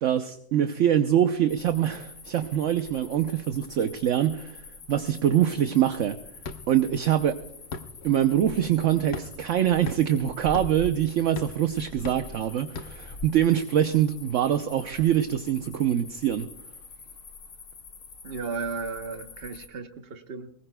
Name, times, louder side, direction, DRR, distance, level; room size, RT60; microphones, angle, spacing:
voice 1, 0.0-6.2 6.7-7.4 8.0-16.5, right 10 dB, 60° right, 9 dB, 0.9 m, -24 dB
sound 1, 1.5-19.7, left 5 dB, 85° left, 2.5 m, -47 dB
sound 2, 6.4-13.3, left 4 dB, 45° left, 1.1 m, -40 dB
voice 2, 18.2-20.5, right 4 dB, 40° right, 7 dB, 1.2 m, -35 dB
22.5 x 20.0 x 2.2 m, 0.71 s
omnidirectional pair, 1.7 m